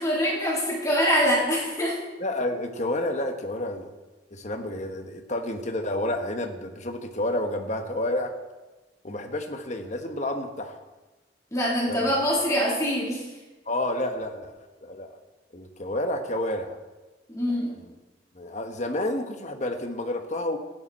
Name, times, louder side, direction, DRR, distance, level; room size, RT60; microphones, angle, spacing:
voice 1, 0.0-2.0 11.5-13.2 17.3-17.7, equal, 20° left, -6 dB, 3.6 m, -24 dB
voice 2, 2.2-3.9 4.3-8.3 9.0-10.8 11.9-12.2 13.6-15.1 15.5-16.8 17.8-17.9 18.3-20.6, left 1 dB, 40° left, 5 dB, 1.3 m, -30 dB
15.5 x 10.5 x 4.3 m, 1.2 s
head